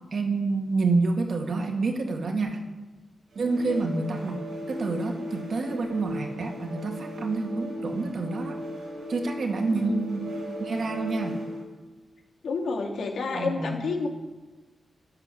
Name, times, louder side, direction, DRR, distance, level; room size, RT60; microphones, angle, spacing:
voice 1, 0.1-2.6 3.4-4.4 4.7-8.6 9.1-10.2 10.6-11.4 13.3-13.8, right 3 dB, 50° right, 3 dB, 2.2 m, -28 dB
sound 1, 3.3-11.7, equal, 85° right, 5.8 m, -37 dB
voice 2, 3.5-3.8 9.7-10.0 12.4-14.1, left 4 dB, 80° left, 1 dB, 3.1 m, -30 dB
12.0 x 11.5 x 8.3 m, 1.2 s
wide cardioid pair, 165°, 0 cm